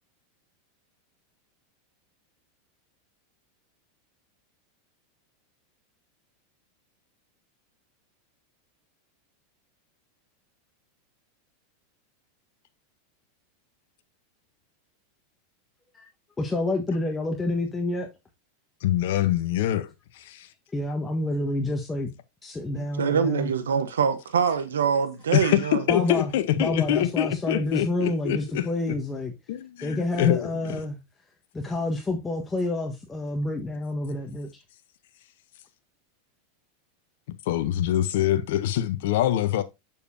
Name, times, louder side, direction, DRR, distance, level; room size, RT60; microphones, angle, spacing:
voice 1, 16.4-18.1 20.7-22.1 22.4-23.5 25.9-26.3 26.6-29.3 29.8-31.0 31.5-34.6, left 2 dB, 15° left, 1.3 m, -28 dB
voice 2, 18.8-20.5 25.3-29.0 29.5-30.8 37.5-39.6, left 12 dB, 70° left, 0.8 m, -25 dB
voice 3, 22.8-25.8, right 7 dB, 90° right, 0.9 m, -24 dB
7.0 x 6.7 x 2.7 m
hypercardioid pair, 105°, 0 cm